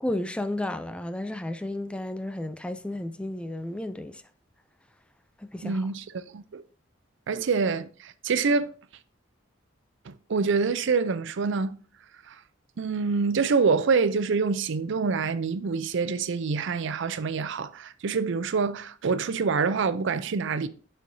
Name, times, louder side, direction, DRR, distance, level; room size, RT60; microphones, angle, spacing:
voice 1, 0.0-4.2 5.4-5.8 7.3-7.4, left 1 dB, 5° left, 0.3 m, -32 dB
voice 2, 5.6-6.0 6.3-6.6 7.3-8.7 10.1-11.8 12.3-12.4 12.8-20.7, right 5 dB, 65° right, 0.5 m, -26 dB
11.5 x 4.4 x 2.7 m
head